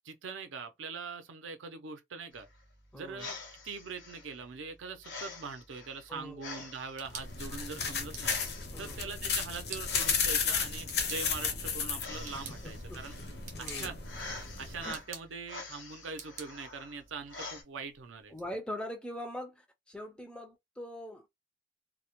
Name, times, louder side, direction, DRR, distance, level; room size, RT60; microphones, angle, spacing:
voice 1, 0.0-2.5 2.9-3.4 3.6-8.3 8.8-13.2 13.6-14.0 14.6-18.3, right 5 dB, 90° right, 0.5 m, -42 dB
sound 1, 2.3-17.6, left 3 dB, 85° left, 0.9 m, -47 dB
voice 2, 2.9-3.3 6.1-6.6 8.7-9.0 12.3-12.4 12.9-13.2 13.5-13.9 18.3-21.3, equal, 5° left, 0.3 m, -42 dB
sound 2, 6.7-18.4, right 6 dB, 40° right, 0.6 m, -51 dB
sound 3, 7.0-14.9, left 6 dB, 60° left, 0.6 m, -34 dB
2.1 x 2.1 x 2.8 m
head